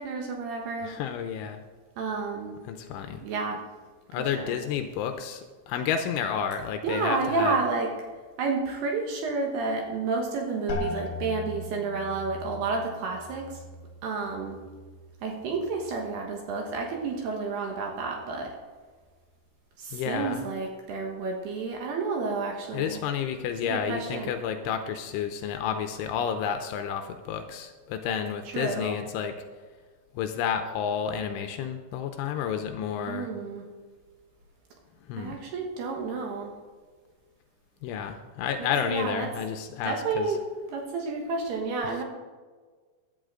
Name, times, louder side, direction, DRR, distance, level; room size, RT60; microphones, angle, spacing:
voice 1, 0.0-0.9 2.0-2.6 3.2-3.6 4.2-4.6 6.8-7.9 8.4-13.6 14.0-14.6 15.2-18.5 19.8-23.0 23.7-24.3 28.5-29.0 33.1-33.7 35.1-36.5 38.6-39.3 39.8-40.4 40.7-42.0, right 4 dB, 65° right, 1 dB, 2.9 m, -30 dB
voice 2, 0.8-1.6 2.7-3.2 4.1-7.6 19.9-20.5 22.7-29.3 30.2-33.3 35.1-35.4 37.8-40.3, left 8 dB, 80° left, 7 dB, 3.0 m, -31 dB
sound 1, 10.7-16.3 16.6-17.3 17.9-18.3, left 2 dB, 55° left, 4.1 m, -40 dB
16.0 x 11.5 x 3.8 m, 1.4 s
omnidirectional pair, 5.9 m